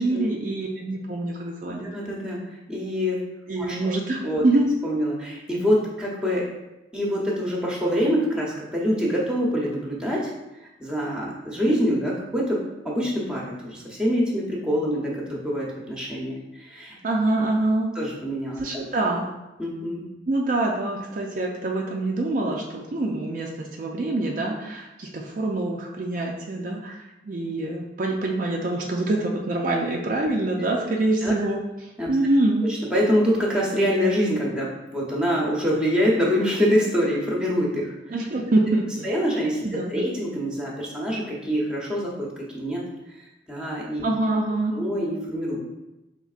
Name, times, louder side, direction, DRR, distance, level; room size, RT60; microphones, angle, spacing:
voice 1, 0.0-1.9 3.5-4.7 17.0-17.9 18.6-19.3 20.3-32.7 38.1-39.1 39.7-40.1 44.0-44.7, right 2 dB, 45° right, -1 dB, 0.4 m, -25 dB
voice 2, 1.8-2.4 2.7-3.2 3.6-3.8 4.2-4.4 4.8-6.5 6.9-10.3 10.8-16.9 17.9-18.9 19.6-20.1 31.2-31.3 32.0-32.1 32.7-37.9 39.0-42.8 43.5-44.0 44.7-45.6, equal, 5° right, -4 dB, 0.8 m, -25 dB
5.1 x 3.5 x 2.4 m, 0.99 s
head